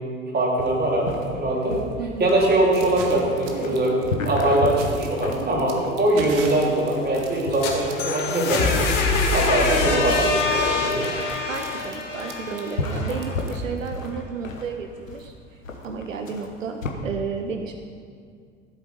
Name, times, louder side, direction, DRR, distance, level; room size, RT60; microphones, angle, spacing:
voice 1, 0.3-1.8 2.2-4.0 4.2-8.6 9.3-10.2 10.5-11.1, right 1 dB, 25° right, -3 dB, 3.4 m, -22 dB
sound 1, 0.6-16.9, left 2 dB, 85° left, 1.2 m, -33 dB
sound 2, 2.7-13.9, right 5 dB, 60° right, 1.5 m, -40 dB
sound 3, 7.4-13.2, left 3 dB, 60° left, 2.2 m, -24 dB
voice 2, 11.5-15.3 15.8-17.7, right 5 dB, 85° right, 5 dB, 0.8 m, -32 dB
14.5 x 8.1 x 5.3 m, 2.2 s
figure-of-eight pair, 75°, 38 cm